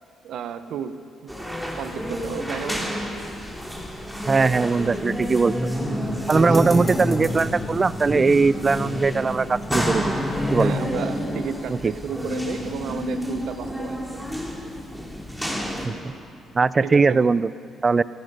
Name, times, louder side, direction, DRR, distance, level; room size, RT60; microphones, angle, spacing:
voice 1, 0.2-1.0 1.2-1.3 1.8-3.0 6.3-6.6 10.6-14.2 16.8-17.3, right 8 dB, 75° right, 11 dB, 0.7 m, -33 dB
sound 1, 1.3-15.9, equal, ahead, 2.5 m, -29 dB
Buzz, 3.7-10.9, left 1 dB, 35° left, 2.7 m, -38 dB
voice 2, 4.3-5.5 6.3-10.2 10.5-10.8 11.7-11.9 15.8-16.1 16.5-17.5 17.8-18.0, right 4 dB, 30° right, 18 dB, 0.3 m, -20 dB
sound 2, 6.3-7.6, left 2 dB, 20° left, 2.0 m, -40 dB
15.0 x 14.0 x 5.4 m, 2.5 s
cardioid pair, 90°, 0 cm